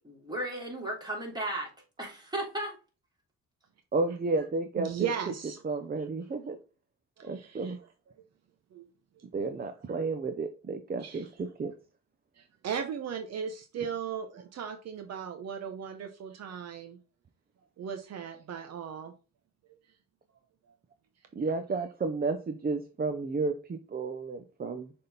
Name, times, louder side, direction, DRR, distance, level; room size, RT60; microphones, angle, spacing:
voice 1, 0.0-1.7 2.0-2.8, right 1 dB, 15° right, 3.2 m, -35 dB
voice 2, 3.9-5.1 5.6-6.6 7.2-7.8 9.3-11.7 21.3-24.9, right 3 dB, 30° right, 0.8 m, -32 dB
voice 3, 4.8-5.6 7.2-7.7 8.7-8.8 9.2-9.3 11.0-11.2 12.4-17.0 17.8-19.1, right 7 dB, 60° right, 0.9 m, -37 dB
6.5 x 3.8 x 4.0 m
cardioid pair, 90°, 30 cm